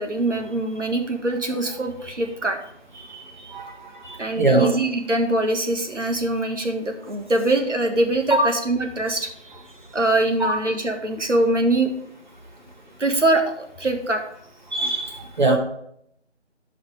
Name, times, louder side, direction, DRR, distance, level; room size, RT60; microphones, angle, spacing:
voice 1, 0.0-2.6 4.1-9.6 9.9-11.9 13.0-14.2, right 2 dB, 90° right, 4 dB, 1.8 m, -23 dB
voice 2, 4.4-4.7 8.3-8.5 10.4-10.6 14.7-15.6, right 2 dB, 40° right, 1 dB, 1.9 m, -21 dB
13.5 x 5.6 x 3.4 m, 0.72 s
figure-of-eight pair, 170°, 35 cm